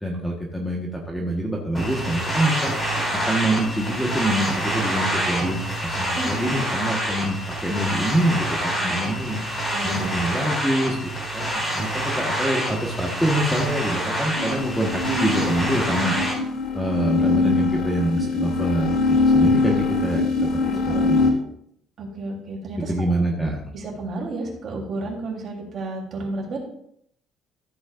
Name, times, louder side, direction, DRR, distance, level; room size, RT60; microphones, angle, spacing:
voice 1, 0.0-2.8 3.3-9.4 9.8-16.1 16.7-20.5 21.1-21.4 22.8-23.6, right 1 dB, 5° left, -1 dB, 1.3 m, -25 dB
sound 1, 1.7-16.3, right 1 dB, 20° left, 4.2 m, -27 dB
voice 2, 9.7-10.1 19.7-19.8 20.6-21.1 22.0-23.1 23.7-26.6, right 2 dB, 40° right, -2 dB, 3.4 m, -32 dB
sound 2, 14.3-21.3, left 3 dB, 60° left, 2.1 m, -22 dB
14.0 x 8.5 x 2.5 m, 0.71 s
cardioid pair, 155°, 0 cm